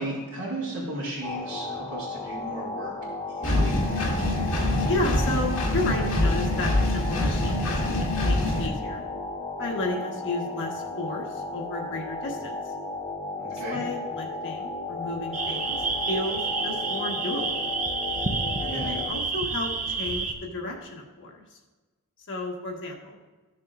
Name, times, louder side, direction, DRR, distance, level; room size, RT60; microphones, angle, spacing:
voice 1, 0.0-2.9 3.3-3.8 13.4-13.8 18.6-18.9, right 1 dB, 85° right, -9 dB, 2.2 m, -35 dB
sound 1, 1.2-19.1, left 3 dB, 25° left, 1.3 m, -35 dB
Engine, 3.4-8.7, left 1 dB, 80° left, 1.9 m, -25 dB
voice 2, 4.9-9.0 9.6-12.7 13.5-17.7 18.6-21.6 22.3-23.2, left 2 dB, 60° left, 0 dB, 1.4 m, -33 dB
sound 2, 15.3-20.3, right 4 dB, 35° right, 0.7 m, -29 dB
14.0 x 6.6 x 2.4 m, 1.2 s
head